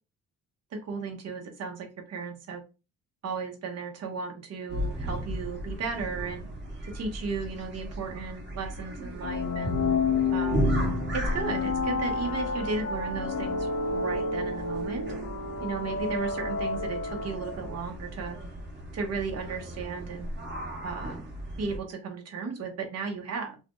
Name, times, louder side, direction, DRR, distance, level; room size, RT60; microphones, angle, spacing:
voice 1, 0.8-2.6 3.2-6.5 6.8-9.7 10.3-10.7 11.1-15.1 15.6-18.4 18.9-20.3 20.8-21.2 21.6-23.6, right 4 dB, 55° right, 2 dB, 1.0 m, -35 dB
sound 1, 4.7-21.8, right 1 dB, 35° right, 1.2 m, -35 dB
sound 2, 9.2-17.8, left 4 dB, 65° left, 0.6 m, -30 dB
2.7 x 2.2 x 3.0 m, 0.30 s
cardioid pair, 90°, 30 cm